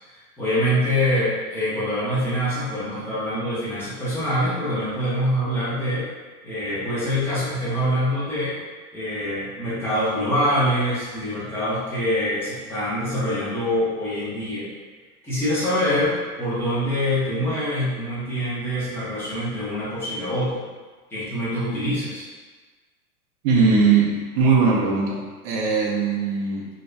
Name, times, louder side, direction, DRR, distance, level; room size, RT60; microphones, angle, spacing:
voice 1, 0.0-6.0 6.4-8.6 8.9-14.7 15.2-20.6 21.1-22.2, equal, 5° left, -11 dB, 0.7 m, -25 dB
voice 2, 23.4-26.7, right 4 dB, 25° right, -3 dB, 0.5 m, -20 dB
2.9 x 2.7 x 3.2 m, 1.4 s
hypercardioid pair, 145°, 45 cm